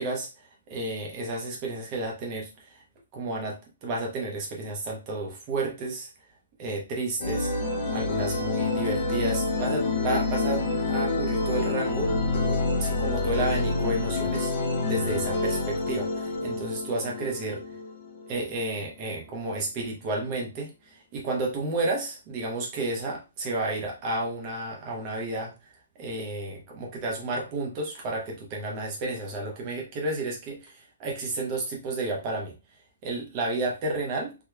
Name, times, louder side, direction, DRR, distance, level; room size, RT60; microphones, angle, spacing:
voice 1, 0.0-2.8 3.1-6.1 6.6-7.5 7.9-12.1 12.5-14.5 14.8-17.6 18.3-25.5 26.0-32.5 33.0-34.3, right 2 dB, 20° right, -1 dB, 0.8 m, -31 dB
sound 1, 7.2-18.6, left 3 dB, 30° left, 0.7 m, -27 dB
3.5 x 3.0 x 2.2 m, 0.28 s
hypercardioid pair, 175°, 0 cm